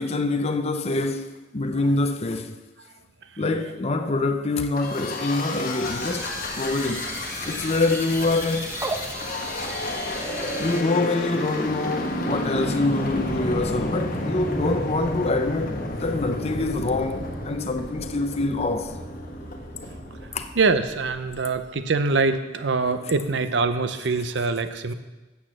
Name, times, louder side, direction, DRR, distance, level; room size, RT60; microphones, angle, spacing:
voice 1, 0.0-2.6 3.4-7.1 7.5-8.9 10.6-18.9 20.3-20.5, left 2 dB, 35° left, 0.6 m, -25 dB
sound 1, 4.7-21.4, left 1 dB, 50° left, 1.3 m, -31 dB
sound 2, 5.8-10.8, right 2 dB, 15° right, 0.7 m, -35 dB
voice 2, 20.6-24.9, right 4 dB, 65° right, 0.7 m, -24 dB
8.4 x 7.0 x 7.4 m
head